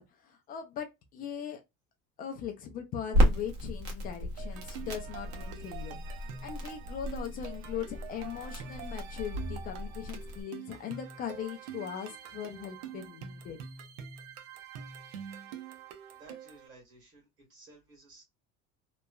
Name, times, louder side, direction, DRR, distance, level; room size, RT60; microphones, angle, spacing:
voice 1, 0.0-1.6 2.2-13.6, left 8 dB, 30° left, 0.4 m, -40 dB
Crackle, 3.1-10.4, equal, 60° right, 1.2 m, -33 dB
sound 1, 4.4-16.7, right 8 dB, 85° right, 0.7 m, -46 dB
voice 2, 16.1-18.2, right 2 dB, 40° right, 1.5 m, -56 dB
2.9 x 2.2 x 2.2 m
cardioid pair, 170°, 30 cm